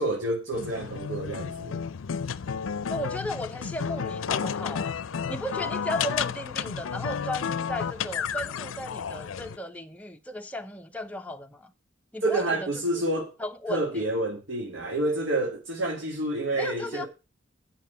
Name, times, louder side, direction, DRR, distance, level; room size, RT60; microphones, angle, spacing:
voice 1, 0.0-1.8 12.2-13.3 13.7-17.1, right 1 dB, 75° right, 2.1 m, -28 dB
sound 1, 0.5-9.6, left 7 dB, 85° left, 0.5 m, -32 dB
voice 2, 2.9-5.0 5.3-11.7 12.1-12.7 13.4-14.1 16.5-17.0, left 1 dB, 5° left, 0.8 m, -35 dB
9.3 x 5.7 x 6.7 m
head